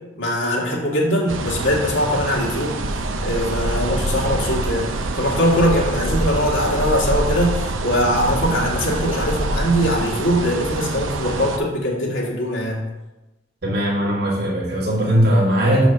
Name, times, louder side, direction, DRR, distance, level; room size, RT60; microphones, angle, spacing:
voice 1, 0.2-2.8 3.2-12.8, equal, 75° left, -3 dB, 2.0 m, -21 dB
sound 1, 1.3-11.6, right 2 dB, 85° right, 0.7 m, -25 dB
voice 2, 13.6-15.9, equal, 55° right, -4 dB, 1.8 m, -19 dB
6.6 x 5.0 x 6.1 m, 1.0 s
head